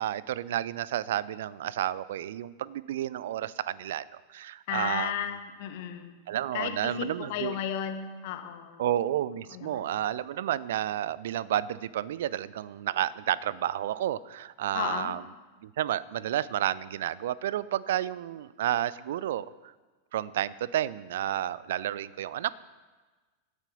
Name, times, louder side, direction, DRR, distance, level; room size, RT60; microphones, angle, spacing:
voice 1, 0.0-5.1 6.3-7.6 8.8-15.2 15.6-19.5 20.1-22.6, right 12 dB, 55° right, 20 dB, 0.4 m, -31 dB
voice 2, 4.7-6.2 6.5-8.8 9.5-9.9 14.7-15.2, left 9 dB, 50° left, 7 dB, 1.4 m, -34 dB
15.5 x 8.7 x 5.4 m, 1.3 s
figure-of-eight pair, 90°, 0 cm